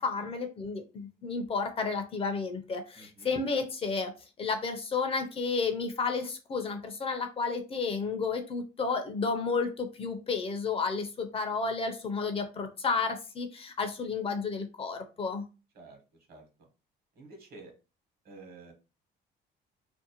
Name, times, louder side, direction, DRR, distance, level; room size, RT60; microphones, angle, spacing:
voice 1, 0.0-4.1 4.4-15.5, left 4 dB, 35° left, 6 dB, 0.4 m, -32 dB
voice 2, 2.9-3.3 15.7-16.0 16.3-16.5 17.1-17.7 18.2-18.7, right 3 dB, 60° right, 3 dB, 1.0 m, -50 dB
2.5 x 2.0 x 2.8 m, 0.30 s
cardioid pair, 125°, 18 cm